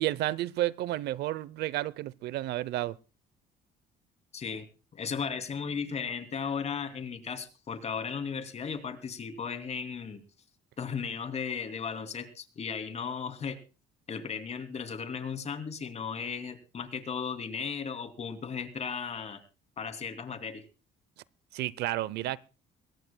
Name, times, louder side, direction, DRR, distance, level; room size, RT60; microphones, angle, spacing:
voice 1, 0.0-3.0 21.5-22.4, right 15 dB, 75° right, 0.7 m, -31 dB
voice 2, 4.3-4.6 4.9-10.2 10.8-13.6 14.1-19.4 19.8-20.6, left 6 dB, 40° left, 2.8 m, -36 dB
22.5 x 17.5 x 2.3 m
cardioid pair, 110°, 17 cm